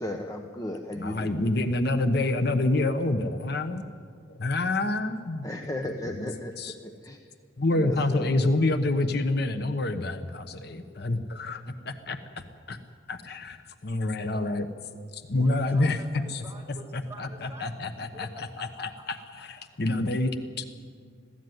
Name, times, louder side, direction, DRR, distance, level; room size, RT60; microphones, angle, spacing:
voice 1, 0.0-1.4 5.4-6.5 6.8-7.2 7.7-8.5, left 1 dB, 20° left, 4 dB, 1.0 m, -35 dB
voice 2, 1.0-3.9 4.3-5.5 6.0-6.3 6.6-6.7 7.6-12.2 12.7-12.8 13.1-14.7 15.1-16.0 16.9-20.6, left 2 dB, 55° left, 8 dB, 1.0 m, -27 dB
voice 3, 15.3-17.7 18.0-19.1 19.4-19.7, right 1 dB, 15° right, -2 dB, 2.9 m, -48 dB
21.0 x 16.0 x 9.4 m, 2.1 s
head